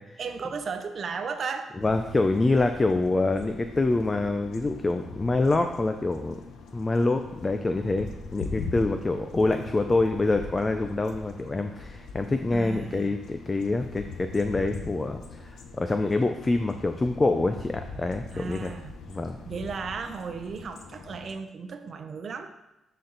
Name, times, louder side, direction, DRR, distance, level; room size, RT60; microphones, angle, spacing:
voice 1, 0.2-1.7 12.5-13.2 18.3-18.9 19.4-22.5, right 5 dB, 45° right, 6 dB, 0.7 m, -35 dB
sound 1, 1.8-21.3, left 4 dB, 75° left, 1.0 m, -42 dB
voice 2, 1.8-6.4 6.7-18.7 19.1-19.4, left 2 dB, 20° left, 6 dB, 0.5 m, -26 dB
13.0 x 4.3 x 4.0 m, 0.93 s
cardioid pair, 125°, 0 cm